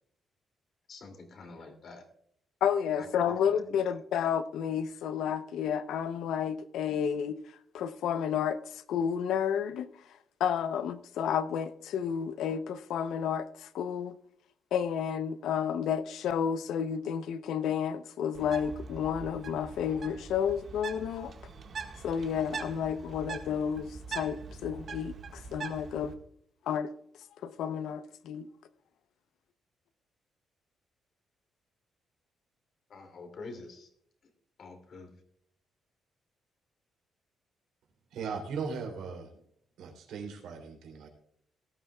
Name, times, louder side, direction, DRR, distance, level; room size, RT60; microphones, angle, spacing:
voice 1, 0.9-2.1 2.9-4.0 32.9-33.9 34.6-35.2, left 3 dB, 55° left, 2.6 m, -47 dB
voice 2, 2.6-7.4 7.7-9.9 10.4-14.2 14.7-21.3 22.0-26.1 26.7-26.9 27.4-28.5, left 8 dB, 85° left, 0.7 m, -31 dB
Bird, 18.3-26.1, right 5 dB, 50° right, 1.7 m, -43 dB
voice 3, 38.1-39.3 39.8-41.1, right 5 dB, 85° right, 3.2 m, -38 dB
18.5 x 12.5 x 2.4 m
cardioid pair, 115°, 0 cm